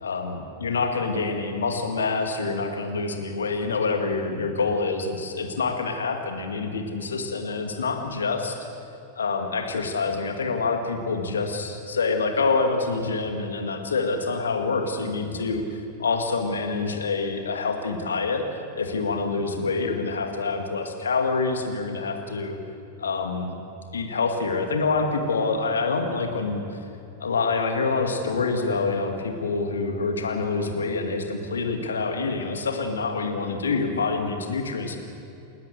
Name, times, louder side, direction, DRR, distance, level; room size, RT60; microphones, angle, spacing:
voice 1, 0.0-8.6 9.2-18.4 18.8-22.6 23.0-23.5 23.9-26.8 27.2-35.0, left 4 dB, 70° left, 4 dB, 2.2 m, -26 dB
29.0 x 13.5 x 8.0 m, 2.7 s
figure-of-eight pair, 90°, 0 cm